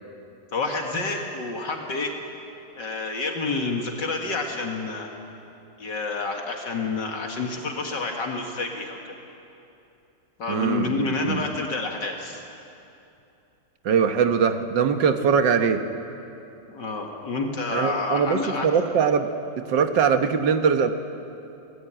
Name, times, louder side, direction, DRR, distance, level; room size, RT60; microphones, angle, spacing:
voice 1, 0.5-2.1 2.8-5.1 5.8-9.1 10.4-12.4 16.7-18.7, left 3 dB, 65° left, 1 dB, 2.4 m, -29 dB
voice 2, 10.5-11.4 13.9-15.8 17.7-19.3 19.6-20.9, right 6 dB, 75° right, 7 dB, 1.9 m, -22 dB
25.5 x 18.0 x 9.0 m, 2.8 s
omnidirectional pair, 2.0 m